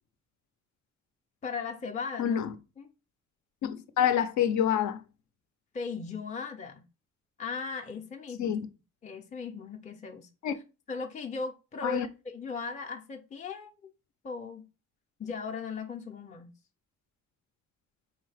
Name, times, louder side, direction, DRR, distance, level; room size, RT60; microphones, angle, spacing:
voice 1, 1.4-2.4 2.8-2.9 5.7-6.8 7.4-8.6 9.0-10.3 10.9-13.7 14.2-14.7 15.2-16.5, left 5 dB, 25° left, 0.5 m, -37 dB
voice 2, 2.2-2.5 3.6-5.0 8.4-8.6 10.4-10.5 11.8-12.1, left 9 dB, 70° left, 0.6 m, -27 dB
3.9 x 2.7 x 3.3 m
cardioid pair, 90°, 30 cm